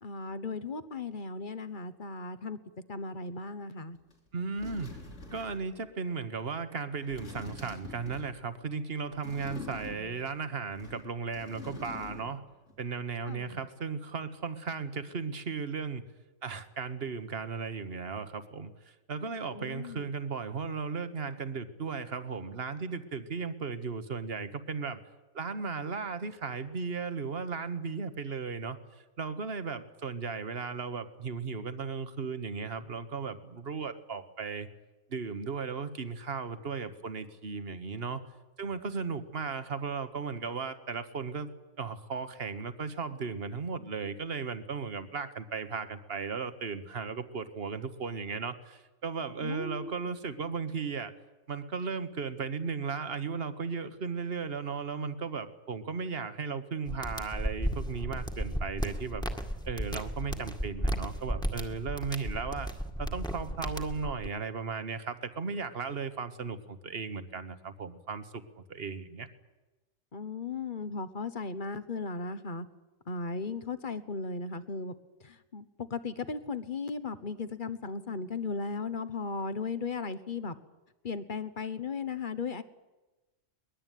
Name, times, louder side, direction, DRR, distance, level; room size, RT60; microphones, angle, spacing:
voice 1, 0.0-2.6 2.9-4.0 13.2-13.6 19.5-20.2 49.4-49.9 70.1-72.7 73.1-74.9 75.2-80.6 81.0-82.6, left 4 dB, 40° left, 13 dB, 1.3 m, -36 dB
sound 1, 4.1-4.2 4.6-5.7 7.0-8.4 9.2-10.3 10.7-12.4 12.7-12.8, left 3 dB, 60° left, 3.7 m, -45 dB
voice 2, 4.3-5.0 5.3-12.4 12.8-16.0 16.4-25.0 25.3-28.8 29.2-34.7 35.1-38.2 38.6-41.5 41.8-51.1 51.5-59.2 59.6-62.7 63.0-68.4 68.7-69.3, right 5 dB, 50° right, 10 dB, 1.6 m, -36 dB
sound 2, 56.9-64.3, equal, 5° left, 1.8 m, -34 dB
22.0 x 21.0 x 9.3 m, 1.1 s
omnidirectional pair, 1.4 m